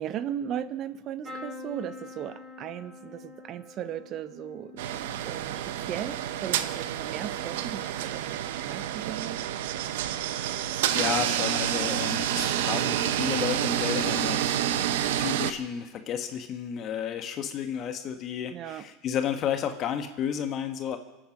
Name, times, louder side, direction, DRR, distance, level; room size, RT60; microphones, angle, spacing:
voice 1, 0.0-4.9 5.2-9.5 10.1-10.2 18.5-18.9, right 10 dB, 45° right, 13 dB, 0.9 m, -37 dB
sound 1, 1.2-9.1 9.5-10.1 11.3-11.5 11.8-11.9, left 4 dB, 15° right, 6.0 m, -48 dB
sound 2, 4.8-15.5, right 11 dB, 80° right, 0.9 m, -29 dB
voice 2, 10.9-21.0, left 8 dB, 45° left, 7 dB, 1.3 m, -32 dB
25.5 x 9.0 x 6.1 m, 1.0 s
supercardioid pair, 120°, 0 cm